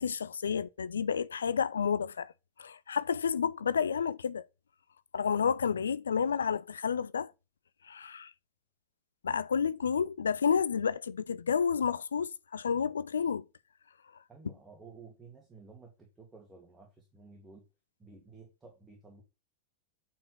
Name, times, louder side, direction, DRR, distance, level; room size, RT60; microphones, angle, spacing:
voice 1, 0.0-2.3 2.6-4.4 5.1-7.3 7.9-8.3 9.2-13.5, left 6 dB, 70° left, 0.4 m, -30 dB
voice 2, 14.3-17.6 18.0-19.2, right 4 dB, 15° right, 2.2 m, -53 dB
8.7 x 4.5 x 6.0 m
figure-of-eight pair, 90°, 0 cm